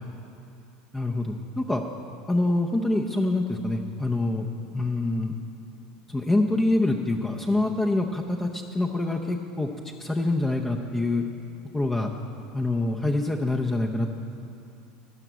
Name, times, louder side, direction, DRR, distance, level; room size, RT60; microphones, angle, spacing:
voice 1, 0.9-1.8 2.3-4.5 4.7-5.4 6.1-9.7 10.0-11.2 11.7-12.1 12.5-14.1, left 2 dB, 10° left, 1 dB, 0.7 m, -25 dB
12.5 x 5.7 x 9.1 m, 2.7 s
supercardioid pair, 110°, 3 cm